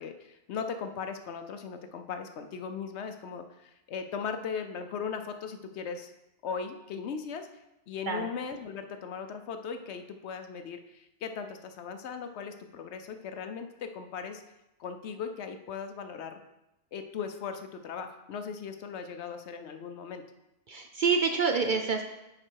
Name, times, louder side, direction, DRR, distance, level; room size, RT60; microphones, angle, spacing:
voice 1, 0.0-6.1 6.4-7.5 7.9-14.4 14.8-16.4 16.9-20.2, left 6 dB, 70° left, 7 dB, 0.9 m, -38 dB
voice 2, 20.7-22.0, right 5 dB, 55° right, 4 dB, 0.6 m, -27 dB
7.5 x 5.0 x 4.6 m, 0.93 s
omnidirectional pair, 1.2 m